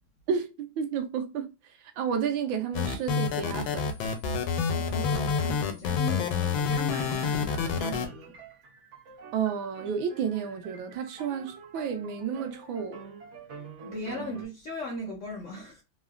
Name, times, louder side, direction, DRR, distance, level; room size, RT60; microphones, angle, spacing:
voice 1, 0.3-1.5 2.0-3.9 9.3-13.0, right 7 dB, 80° right, 1.4 m, -31 dB
sound 1, 2.7-8.1, left 6 dB, 90° left, 1.4 m, -28 dB
voice 2, 4.7-8.3 13.8-15.8, left 1 dB, 70° left, 0.7 m, -38 dB
sound 2, 6.9-14.4, right 5 dB, 55° right, 0.8 m, -46 dB
3.6 x 2.0 x 2.4 m
omnidirectional pair, 2.1 m